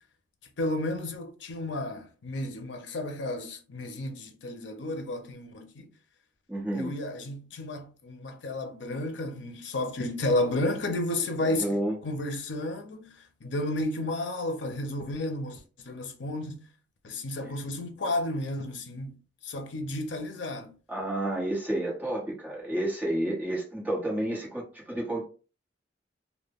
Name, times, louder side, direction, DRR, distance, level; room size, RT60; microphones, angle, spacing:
voice 1, 0.6-5.9 6.7-11.7 12.0-13.1 13.4-15.6 15.8-16.7 17.0-20.7, left 1 dB, 80° left, 0.5 m, -32 dB
voice 2, 6.5-6.9 11.4-12.0 20.9-25.2, right 1 dB, 10° right, 1.0 m, -30 dB
2.1 x 2.1 x 3.4 m
head